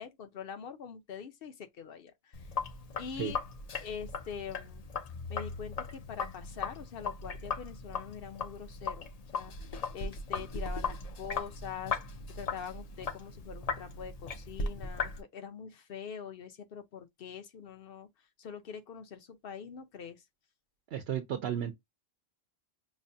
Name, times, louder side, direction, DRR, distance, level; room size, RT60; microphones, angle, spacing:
voice 1, 0.0-2.5 3.0-3.4 3.8-4.8 5.3-9.5 9.9-12.0 12.3-18.1 18.4-20.2, left 7 dB, 65° left, 0.9 m, -44 dB
Sink (filling or washing), 2.3-15.2, left 4 dB, 45° left, 0.6 m, -38 dB
voice 2, 20.9-21.7, right 9 dB, 75° right, 0.9 m, -33 dB
5.3 x 2.1 x 2.6 m
omnidirectional pair, 1.0 m